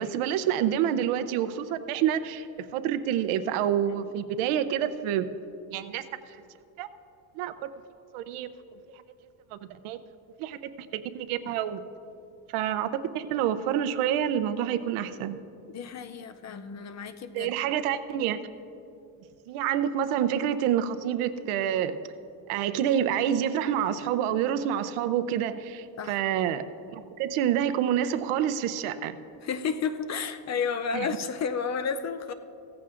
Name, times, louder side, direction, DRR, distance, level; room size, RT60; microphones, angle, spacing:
voice 1, 0.0-2.5 2.7-5.2 5.7-6.0 6.8-6.9 7.4-7.5 8.1-8.5 9.5-10.0 10.4-10.6 10.9-11.8 12.5-15.4 17.3-18.4 19.5-21.9 22.5-29.2 30.9-31.1, right 10 dB, 80° right, 12 dB, 0.7 m, -27 dB
voice 2, 15.7-17.5 26.0-26.2 29.4-32.3, left 6 dB, 35° left, 10 dB, 0.4 m, -31 dB
16.5 x 14.5 x 2.5 m, 2.7 s
cardioid pair, 140°, 49 cm